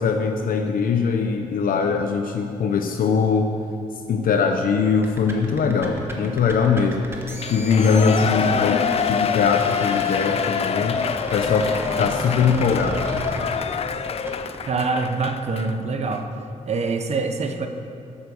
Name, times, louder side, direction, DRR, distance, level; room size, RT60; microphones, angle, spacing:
voice 1, 0.0-3.5 4.1-7.0 7.5-11.7 12.0-13.2, left 5 dB, 75° left, 4 dB, 0.7 m, -21 dB
sound 1, 4.9-14.6, right 1 dB, 15° right, 1.3 m, -34 dB
Shout / Cheering, 7.4-15.7 16.1-16.2, left 7 dB, 45° left, 0.4 m, -26 dB
voice 2, 14.6-16.3 16.7-17.7, right 4 dB, 50° right, 6 dB, 0.9 m, -25 dB
11.0 x 9.0 x 7.0 m, 2.7 s
wide cardioid pair, 160°, 15 cm